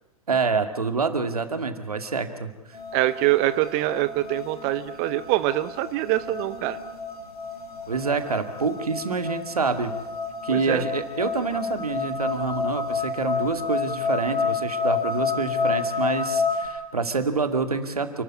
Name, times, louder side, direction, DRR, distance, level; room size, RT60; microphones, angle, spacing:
voice 1, 0.3-2.5 7.9-9.9 10.4-18.2, right 4 dB, 80° right, 8 dB, 2.2 m, -27 dB
sound 1, 2.7-16.7, left 5 dB, 85° left, 5.3 m, -30 dB
voice 2, 2.9-6.8 10.5-10.8, right 16 dB, 35° right, 14 dB, 0.8 m, -24 dB
28.5 x 13.0 x 9.5 m, 1.1 s
figure-of-eight pair, 110°, 19 cm